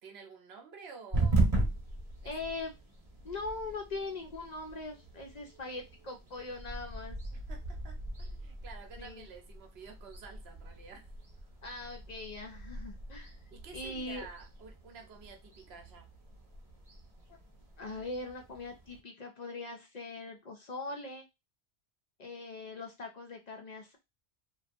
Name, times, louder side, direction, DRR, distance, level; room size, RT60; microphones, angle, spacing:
voice 1, 0.0-1.5 2.2-2.3 7.3-11.1 13.5-16.1, right 5 dB, 70° right, 4 dB, 0.9 m, -51 dB
sound 1, 1.1-19.0, right 2 dB, 35° right, 0.8 m, -38 dB
voice 2, 2.2-2.7 3.2-7.2 9.0-9.3 11.6-13.4 13.7-14.3 17.3-17.4 17.8-21.2 22.2-24.0, left 3 dB, 55° left, 3 dB, 0.4 m, -41 dB
2.7 x 2.2 x 2.4 m, 0.23 s
omnidirectional pair, 1.1 m